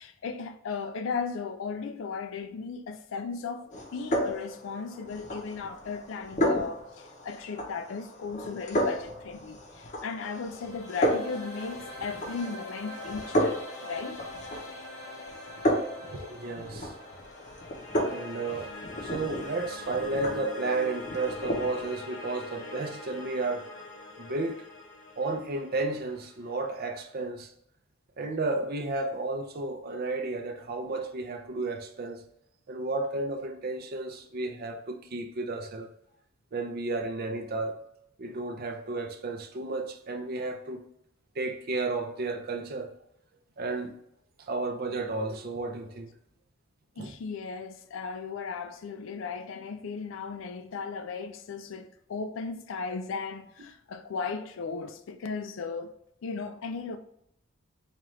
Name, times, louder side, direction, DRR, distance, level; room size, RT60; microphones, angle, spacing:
voice 1, 0.0-14.2 47.0-55.9 56.2-57.0, left 5 dB, 70° left, 0.4 m, -36 dB
sound 1, 3.7-21.9, equal, 40° left, 0.7 m, -33 dB
sound 2, 10.0-27.1, left 2 dB, 85° left, 1.0 m, -43 dB
voice 2, 16.0-16.9 18.1-18.7 19.0-23.7 24.2-24.7 25.2-27.5 28.2-32.2 32.7-35.9 36.5-37.8 38.2-40.9 41.4-42.9 43.6-43.9 44.4-46.1 47.0-47.2, right 3 dB, 50° right, 0.5 m, -33 dB
4.4 x 2.5 x 3.1 m
head